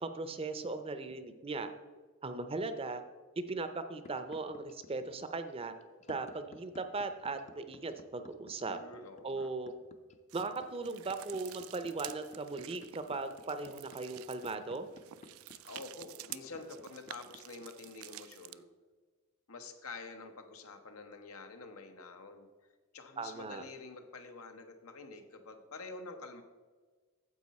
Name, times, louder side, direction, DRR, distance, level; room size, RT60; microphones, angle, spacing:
voice 1, 0.0-1.7 2.2-3.0 3.5-5.7 6.1-8.8 9.2-9.7 10.3-14.9 23.2-23.6, right 3 dB, 25° right, 9 dB, 0.5 m, -38 dB
sound 1, 4.0-18.6, left 3 dB, 35° left, 0.5 m, -55 dB
voice 2, 8.5-9.5 15.6-18.7 19.5-22.5 22.9-26.4, left 3 dB, 85° left, 6 dB, 1.0 m, -48 dB
sound 2, 10.3-18.6, right 15 dB, 75° right, 0.3 m, -50 dB
9.5 x 7.5 x 4.2 m, 1.4 s
head